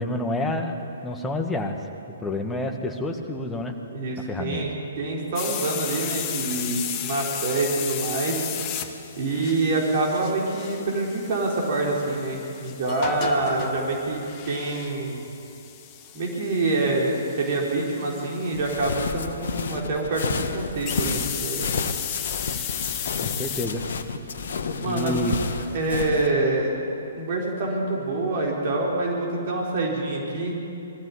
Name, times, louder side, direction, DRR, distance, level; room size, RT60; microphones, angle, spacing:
voice 1, 0.0-1.8 2.2-3.8 4.3-4.6 23.2-23.8 24.8-25.4, left 1 dB, 10° left, 3 dB, 1.8 m, -28 dB
voice 2, 3.9-8.4 9.2-15.2 16.1-21.6 24.8-25.1 25.7-26.7 27.2-30.5, right 2 dB, 45° right, -2 dB, 4.1 m, -26 dB
sound 1, 5.4-18.9 20.9-23.7, left 9 dB, 30° left, 1.3 m, -34 dB
sound 2, 18.5-26.3, left 4 dB, 60° left, 1.3 m, -31 dB
21.5 x 14.0 x 8.5 m, 2.8 s
figure-of-eight pair, 125°, 0 cm